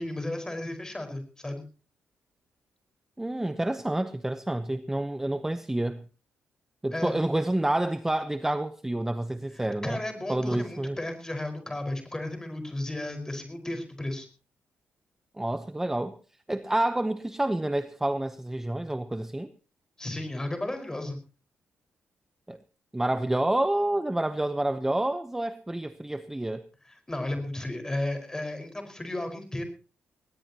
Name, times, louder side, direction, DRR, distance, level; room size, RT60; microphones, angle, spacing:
voice 1, 0.0-1.6 6.9-7.1 9.5-14.3 20.0-21.2 27.1-29.6, left 1 dB, 15° left, 5.1 m, -34 dB
voice 2, 3.2-6.0 6.8-10.0 10.3-11.0 15.4-16.2 16.5-19.5 22.5-22.6 22.9-26.6, right 1 dB, 10° right, 0.9 m, -28 dB
19.5 x 19.5 x 3.0 m
cardioid pair, 95°, 4 cm